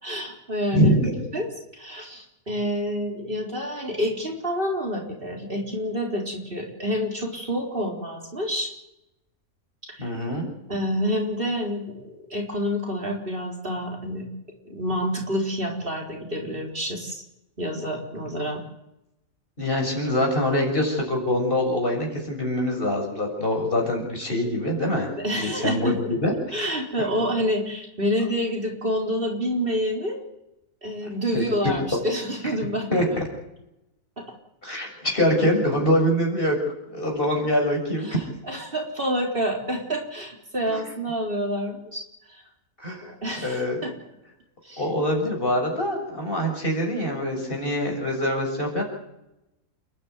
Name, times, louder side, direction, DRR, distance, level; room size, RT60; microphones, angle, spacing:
voice 1, 0.0-0.9 1.3-1.5 1.7-8.7 9.9-10.1 10.7-14.3 14.6-17.2 17.6-18.6 25.2-26.0 26.5-30.2 30.8-33.0 34.2-34.3 38.0-42.0 42.3-42.4 43.0-43.9 44.6-44.8, equal, 40° right, 0 dB, 4.3 m, -28 dB
voice 2, 0.7-1.2 10.0-10.5 19.6-26.7 31.3-31.4 32.9-33.1 34.6-36.6 36.9-38.2 40.7-40.8 42.8-43.0 43.4-43.8 44.8-48.8, equal, 40° left, 1 dB, 6.9 m, -24 dB
29.5 x 12.0 x 9.5 m, 0.88 s
omnidirectional pair, 1.5 m